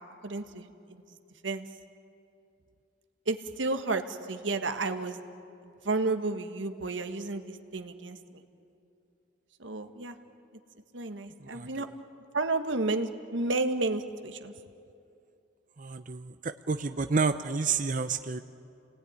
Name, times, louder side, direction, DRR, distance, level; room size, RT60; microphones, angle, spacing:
voice 1, 0.2-0.7 1.4-1.6 3.3-5.2 5.6-8.4 9.6-10.1 10.9-11.9 12.3-14.5, right 3 dB, 90° right, 7 dB, 1.5 m, -31 dB
voice 2, 11.4-11.8 15.8-18.4, right 4 dB, 45° right, 9 dB, 0.6 m, -30 dB
29.5 x 19.0 x 9.6 m, 2.6 s
head